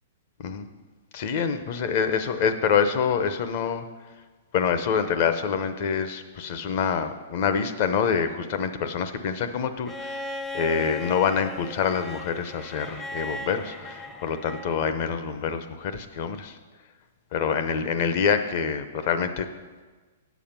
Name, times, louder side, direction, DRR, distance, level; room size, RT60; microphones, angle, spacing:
voice 1, 1.1-3.8 4.5-16.6 17.3-19.5, left 6 dB, 45° left, 10 dB, 0.7 m, -26 dB
Bowed string instrument, 9.9-14.9 16.4-16.5, left 2 dB, 10° left, 0.5 m, -37 dB
8.7 x 7.1 x 5.8 m, 1.3 s
hypercardioid pair, 160°, 0 cm